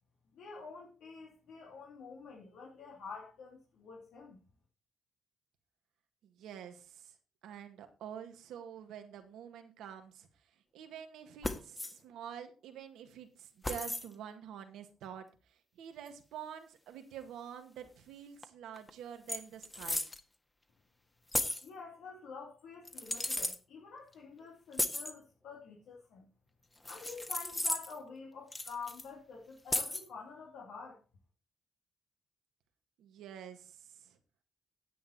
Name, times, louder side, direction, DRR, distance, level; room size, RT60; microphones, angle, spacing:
voice 1, 0.3-4.4 21.6-26.3 26.9-31.0, left 5 dB, 80° left, -2 dB, 2.7 m, -48 dB
voice 2, 6.2-7.1 7.4-10.3 10.7-20.0 33.0-34.2, right 9 dB, 80° right, 6 dB, 1.9 m, -47 dB
sound 1, 11.4-11.9 13.6-14.1 16.1-16.2 18.4-18.5 18.8-18.9 19.3-20.2 21.3-21.7 22.8-23.6 24.7-25.1 26.8-28.0 28.5-29.1 29.7-30.1, left 2 dB, 20° left, 1.7 m, -35 dB
10.0 x 8.8 x 4.3 m, 0.33 s
supercardioid pair, 55°, 0 cm